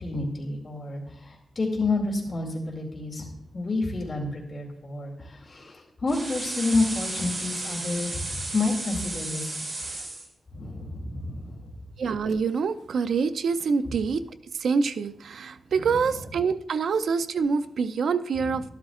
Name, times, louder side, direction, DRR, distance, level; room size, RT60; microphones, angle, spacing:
voice 1, 0.0-9.5 10.5-11.7, left 3 dB, 40° left, -1 dB, 2.4 m, -29 dB
sound 1, 6.1-10.3, right 2 dB, 40° right, 2.5 m, -33 dB
voice 2, 12.0-14.3 14.5-18.7, right 5 dB, 85° right, 12 dB, 0.4 m, -26 dB
12.0 x 11.5 x 2.4 m, 0.74 s
wide cardioid pair, 115°, 0 cm